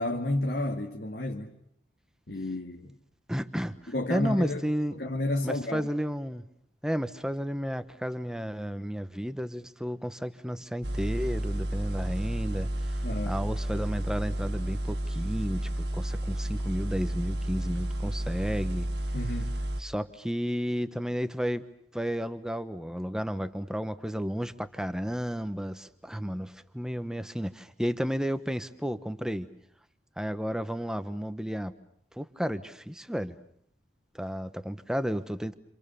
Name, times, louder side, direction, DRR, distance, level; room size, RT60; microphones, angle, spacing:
voice 1, 0.0-1.5 2.3-3.0 3.9-4.6 4.9-5.9 13.0-13.4 19.1-19.5, left 1 dB, 60° left, 2.0 m, -31 dB
voice 2, 3.3-4.9 5.4-6.4 6.8-18.9 19.8-21.7 21.9-29.5 30.2-31.7 32.1-33.3 34.1-35.5, equal, 5° right, 1.2 m, -32 dB
sound 1, 10.8-19.8, right 1 dB, 65° right, 1.7 m, -31 dB
30.0 x 27.5 x 7.0 m
head